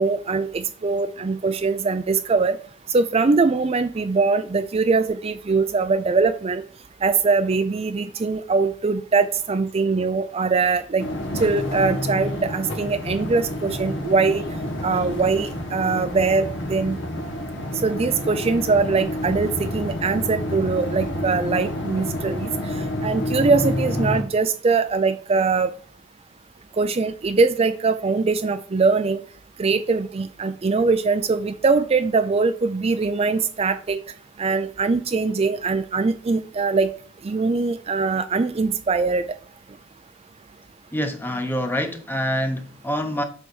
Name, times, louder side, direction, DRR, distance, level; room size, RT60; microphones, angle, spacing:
voice 1, 0.0-2.6 2.9-6.6 7.0-11.1 11.3-14.4 14.8-17.0 17.8-22.7 23.0-25.7 26.8-29.2 29.6-34.0 34.4-36.9 37.2-39.2, right 4 dB, 30° right, 0.4 m, -22 dB
sound 1, 11.0-24.2, left 1 dB, 70° left, 1.6 m, -29 dB
voice 2, 40.9-43.2, equal, 10° left, 1.0 m, -26 dB
7.7 x 4.0 x 6.3 m
head